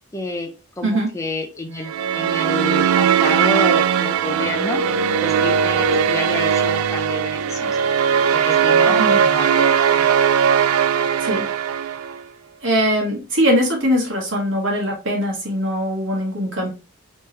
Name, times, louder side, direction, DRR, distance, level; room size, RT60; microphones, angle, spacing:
voice 1, 0.1-0.5 0.8-4.9 5.2-7.8 8.3-10.1, left 2 dB, 15° left, 3 dB, 0.4 m, -29 dB
voice 2, 0.8-1.1 8.9-9.2 11.2-11.4 12.6-16.7, equal, 60° right, -2 dB, 1.5 m, -21 dB
sound 1, 1.8-12.2, right 7 dB, 85° right, 0.4 m, -18 dB
3.4 x 3.1 x 2.8 m, 0.31 s
head